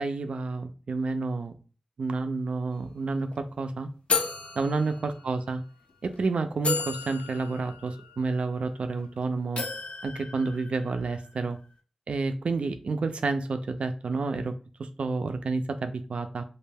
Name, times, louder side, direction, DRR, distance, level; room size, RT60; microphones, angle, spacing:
voice 1, 0.0-1.5 2.0-3.9 4.6-5.6 6.0-9.6 10.0-11.6 12.1-14.5 14.8-16.4, right 3 dB, 80° right, 8 dB, 0.3 m, -30 dB
sound 1, 2.7-2.9 3.1-3.3 4.1-5.5 6.1-6.2 6.6-9.1 9.6-11.2, left 5 dB, 75° left, 0.4 m, -33 dB
2.5 x 2.2 x 3.3 m, 0.38 s
wide cardioid pair, 95°, 2 cm